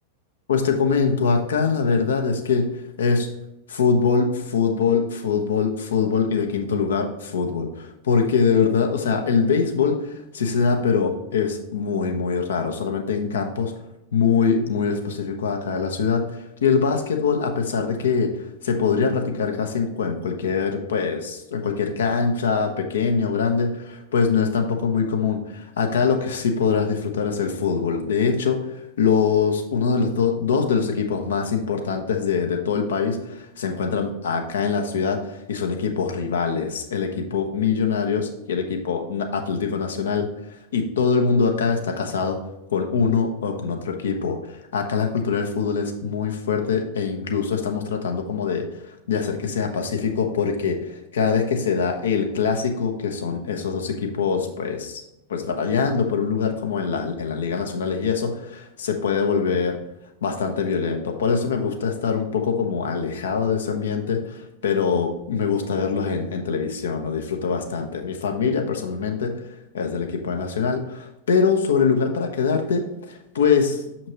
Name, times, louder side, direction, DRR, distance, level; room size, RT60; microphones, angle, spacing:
voice 1, 0.5-2.6 3.0-3.3 3.7-13.7 14.1-42.4 42.7-55.0 55.3-59.8 60.2-69.3 69.7-73.8, left 5 dB, 65° left, 4 dB, 1.0 m, -23 dB
6.7 x 5.8 x 2.9 m, 0.90 s
figure-of-eight pair, 90°, 0 cm